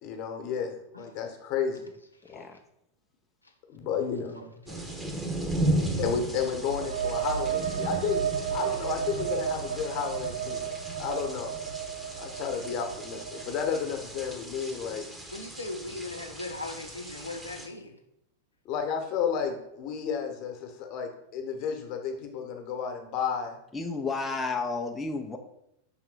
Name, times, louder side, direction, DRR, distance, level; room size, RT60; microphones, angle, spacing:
voice 1, 0.0-1.9 2.3-2.5 3.7-4.5 6.0-8.2 8.5-11.5 12.2-15.1 18.6-23.6, left 6 dB, 40° left, 5 dB, 1.1 m, -32 dB
voice 2, 2.2-2.6 23.7-25.4, left 3 dB, 10° left, 2 dB, 0.6 m, -32 dB
voice 3, 4.0-5.1 15.3-18.0, left 2 dB, 85° left, 4 dB, 0.5 m, -40 dB
sound 1, 4.7-17.7, right 1 dB, 10° right, 1.0 m, -36 dB
sound 2, 6.5-14.1, right 8 dB, 65° right, 0.3 m, -33 dB
5.7 x 3.7 x 4.7 m, 0.78 s
figure-of-eight pair, 90°, 0 cm